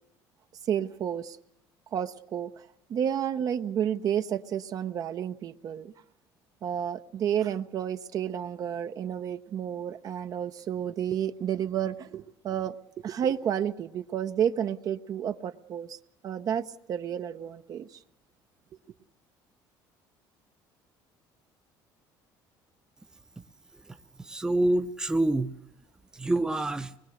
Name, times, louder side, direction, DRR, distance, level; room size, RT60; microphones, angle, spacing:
voice 1, 0.7-1.4 1.9-2.6 2.9-5.9 6.6-12.7 13.0-16.0 16.2-17.9, right 9 dB, 45° right, 0.8 m, -31 dB
voice 2, 24.2-25.5 26.1-26.9, right 2 dB, 10° right, 0.8 m, -26 dB
24.5 x 21.5 x 6.5 m
cardioid pair, 140°, 9 cm